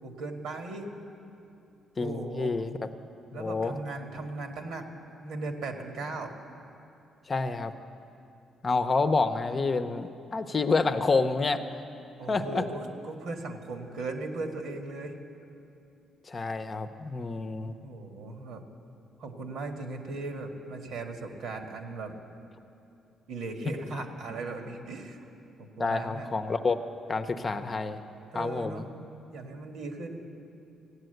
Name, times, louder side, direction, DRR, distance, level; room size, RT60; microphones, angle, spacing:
voice 1, 0.0-0.9 2.0-2.6 3.3-4.9 5.2-6.3 12.2-15.2 17.8-18.6 19.2-22.1 23.3-25.2 25.6-26.3 28.3-28.9 29.3-30.3, right 3 dB, 80° right, 4 dB, 1.7 m, -37 dB
voice 2, 2.0-2.9 3.3-3.7 7.3-7.7 8.6-11.6 12.3-12.7 16.3-17.7 25.8-26.8 27.1-28.0 28.3-28.9, left 4 dB, 35° left, 8 dB, 0.8 m, -28 dB
16.0 x 9.2 x 7.9 m, 2.7 s
cardioid pair, 90°, 0 cm